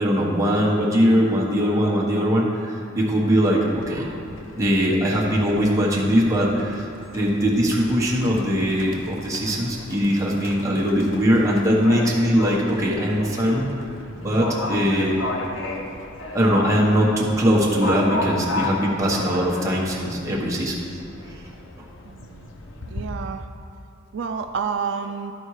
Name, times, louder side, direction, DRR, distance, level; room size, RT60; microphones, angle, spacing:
voice 1, 0.0-4.1 4.6-6.8 7.1-13.7 14.2-15.2 16.3-20.8 21.3-21.4, equal, 15° right, -4 dB, 1.2 m, -21 dB
Livestock farm animals working animals, 3.7-23.1, left 2 dB, 90° left, 0.8 m, -34 dB
voice 2, 22.1-22.5 22.9-23.5 24.1-25.3, right 6 dB, 65° right, 6 dB, 0.3 m, -29 dB
12.5 x 4.4 x 4.8 m, 2.6 s
head